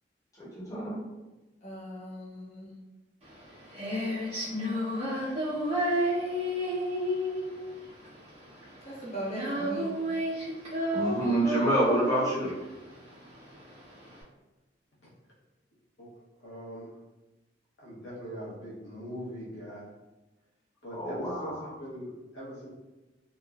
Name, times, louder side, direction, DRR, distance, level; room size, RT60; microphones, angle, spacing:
voice 1, 0.4-1.0 10.9-12.5 21.0-21.6, right 1 dB, 20° left, -9 dB, 0.9 m, -27 dB
voice 2, 1.6-2.7 8.8-9.9, right 1 dB, 40° left, -5 dB, 0.6 m, -39 dB
Female singing, 3.2-14.2, equal, 35° right, 1.0 m, -31 dB
voice 3, 16.4-16.9 17.8-19.9 20.8-22.7, equal, 80° left, -5 dB, 0.8 m, -41 dB
3.0 x 2.0 x 2.3 m, 1.1 s
head